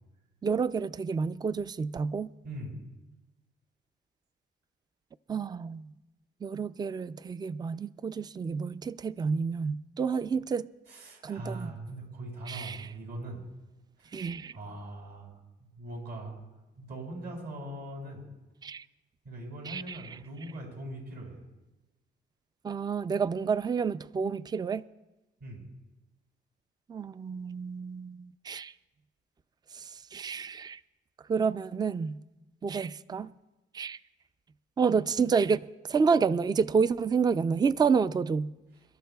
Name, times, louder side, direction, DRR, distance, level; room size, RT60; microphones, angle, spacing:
voice 1, 0.4-2.3 5.3-5.9 6.4-10.7 11.2-11.7 12.5-12.9 14.1-14.6 18.6-18.9 19.6-20.2 22.6-24.8 26.9-28.7 29.7-30.8 31.3-32.2 32.6-33.3 33.7-34.0 34.8-35.6 35.8-38.5, right 5 dB, 20° right, 0.4 m, -29 dB
voice 2, 2.4-2.8 10.9-13.4 14.0-14.1 14.5-15.4 15.7-16.4 16.8-18.2 19.2-21.4 25.4-25.6, right 1 dB, 55° right, 6.3 m, -41 dB
29.0 x 12.5 x 2.3 m
cardioid pair, 90°, 20 cm